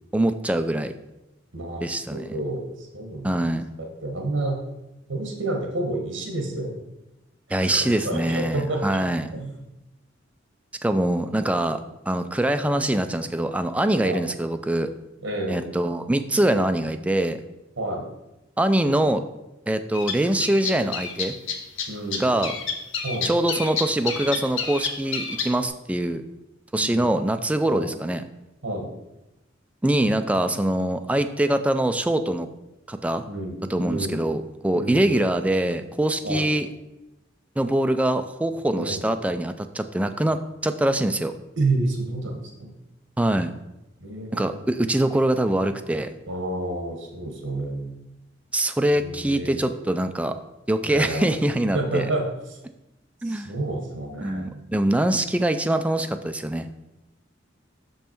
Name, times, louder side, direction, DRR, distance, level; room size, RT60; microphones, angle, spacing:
voice 1, 0.1-0.9 1.8-2.3 3.2-3.7 7.5-9.3 10.8-11.8 12.1-14.9 15.5-17.4 18.6-19.2 19.7-21.3 22.2-22.5 23.2-26.2 26.7-28.2 29.8-32.5 32.9-33.3 33.7-36.7 37.6-41.3 43.2-43.5 44.3-46.1 48.5-50.4 50.7-52.1 53.2-53.5 54.2-56.7, right 1 dB, 5° right, 8 dB, 0.3 m, -23 dB
voice 2, 1.5-3.3 4.0-4.6 5.1-6.8 7.6-9.0 9.3-9.6 12.6-12.8 14.0-14.2 15.2-15.8 17.8-18.1 21.9-22.2 23.0-23.3 26.8-27.1 27.7-27.9 28.6-28.9 33.3-34.2 34.7-35.2 36.2-36.5 38.7-39.0 41.6-42.7 44.0-44.5 46.3-47.9 48.9-49.7 50.8-51.4 51.7-52.2 52.5-52.6 53.2-54.6, right 2 dB, 80° right, 2 dB, 1.2 m, -30 dB
sound 1, 19.9-21.9 22.1-25.6, left 6 dB, 80° left, 1.0 m, -29 dB
6.2 x 5.4 x 4.4 m, 0.95 s
head